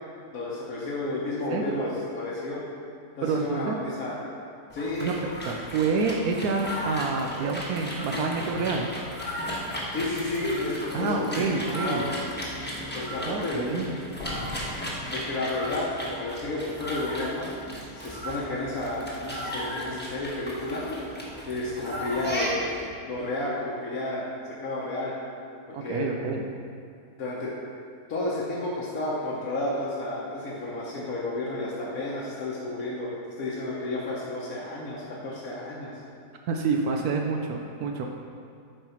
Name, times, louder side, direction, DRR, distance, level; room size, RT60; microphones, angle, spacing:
voice 1, 0.3-2.6 3.2-4.2 4.7-5.1 9.9-12.2 12.9-14.1 15.1-17.5 18.0-20.8 21.5-22.7 23.1-24.2 24.6-25.1 25.8-26.1 27.2-27.5 28.1-33.1 33.4-36.0, left 2 dB, 65° left, -6 dB, 1.4 m, -31 dB
voice 2, 3.2-3.8 5.0-5.1 5.4-8.9 10.9-12.0 13.2-14.0 25.7-26.5 36.5-38.1, right 4 dB, 75° right, 2 dB, 1.1 m, -28 dB
sound 1, 4.7-22.9, equal, 10° left, 1.1 m, -35 dB
sound 2, 14.2-16.0, left 2 dB, 50° left, 0.9 m, -40 dB
7.9 x 4.6 x 5.7 m, 2.3 s
omnidirectional pair, 1.6 m